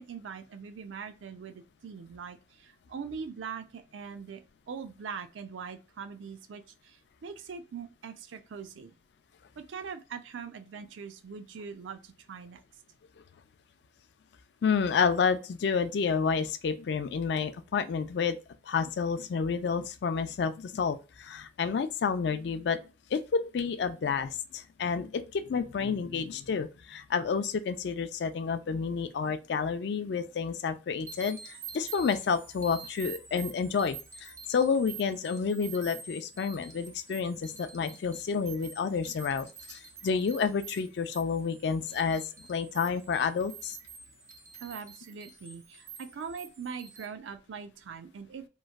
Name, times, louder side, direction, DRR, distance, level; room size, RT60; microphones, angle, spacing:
voice 1, 0.0-9.0 9.6-12.6 21.8-21.9 28.5-28.7 44.6-48.4, right 6 dB, 80° right, 0.4 m, -42 dB
voice 2, 14.6-18.4 18.7-22.8 23.1-42.2 42.5-43.8, left 5 dB, 60° left, 0.3 m, -30 dB
sound 1, 31.1-47.0, right 5 dB, 15° right, 0.4 m, -48 dB
3.0 x 2.5 x 2.3 m
head